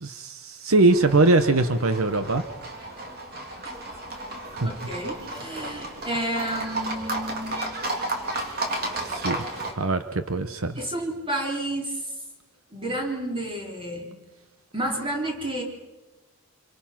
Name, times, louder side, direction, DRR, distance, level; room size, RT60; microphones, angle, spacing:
voice 1, 0.0-2.5 4.5-4.7 9.1-9.5 9.7-10.8, right 2 dB, 70° right, 9 dB, 1.0 m, -22 dB
Livestock farm animals working animals, 0.9-9.7, right 2 dB, 45° right, 3.3 m, -33 dB
voice 2, 4.6-7.6 10.8-12.1 12.7-14.1 14.7-15.6, right 1 dB, 25° right, 0 dB, 3.7 m, -30 dB
27.0 x 24.5 x 5.9 m, 1.2 s
head